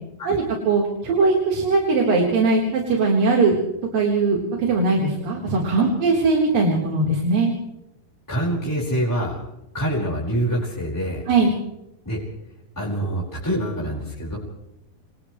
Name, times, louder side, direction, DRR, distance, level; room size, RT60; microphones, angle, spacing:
voice 1, 0.3-3.6 3.9-7.5 11.3-11.5, right 3 dB, 85° right, -2 dB, 6.0 m, -20 dB
voice 2, 8.3-9.4 9.7-11.2 12.0-12.2 12.7-14.4, right 1 dB, 5° left, -4 dB, 5.1 m, -25 dB
29.0 x 28.0 x 3.3 m, 0.90 s
omnidirectional pair, 3.9 m